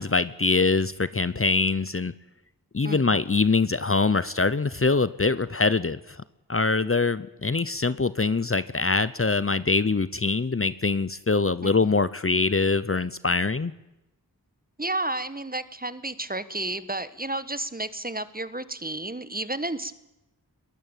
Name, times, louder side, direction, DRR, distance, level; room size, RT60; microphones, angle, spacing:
voice 1, 0.0-2.1 2.7-6.2 6.5-13.7, left 3 dB, 35° left, 16 dB, 0.8 m, -24 dB
voice 2, 2.8-3.2 11.6-11.7 14.8-19.9, right 2 dB, 25° right, 14 dB, 1.3 m, -32 dB
21.5 x 20.0 x 9.1 m, 0.94 s
wide cardioid pair, 45°, 37 cm